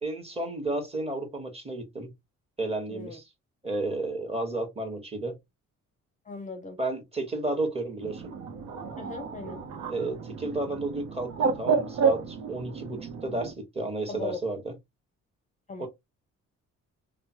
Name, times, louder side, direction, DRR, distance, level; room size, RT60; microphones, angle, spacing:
voice 1, 0.0-2.1 2.6-3.3 3.6-5.4 6.8-8.3 9.9-14.7 15.8-15.9, right 2 dB, 20° right, 1.2 m, -32 dB
voice 2, 6.3-6.8 9.0-9.6 14.1-14.4 15.7-15.9, left 4 dB, 25° left, 0.6 m, -38 dB
Bird, 8.0-13.5, right 5 dB, 90° right, 0.7 m, -30 dB
3.0 x 2.0 x 2.8 m
cardioid pair, 90°, 30 cm